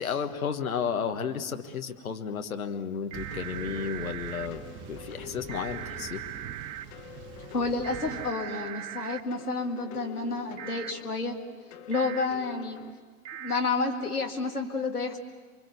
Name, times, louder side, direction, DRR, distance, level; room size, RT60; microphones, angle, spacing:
voice 1, 0.0-4.6 4.9-6.2, left 7 dB, 70° left, 7 dB, 1.6 m, -32 dB
sound 1, 3.1-8.3, right 8 dB, 25° right, 1.1 m, -44 dB
sound 2, 3.1-4.5 5.5-6.9 7.8-9.2 10.6-10.9 11.9-12.3 13.2-13.6, right 11 dB, 50° right, 1.0 m, -39 dB
sound 3, 3.3-12.9, left 9 dB, 35° left, 1.8 m, -47 dB
voice 2, 7.5-11.3 11.9-12.8 13.4-15.2, left 3 dB, 85° left, 2 dB, 2.0 m, -30 dB
29.0 x 23.5 x 7.1 m, 1.4 s
figure-of-eight pair, 100°, 44 cm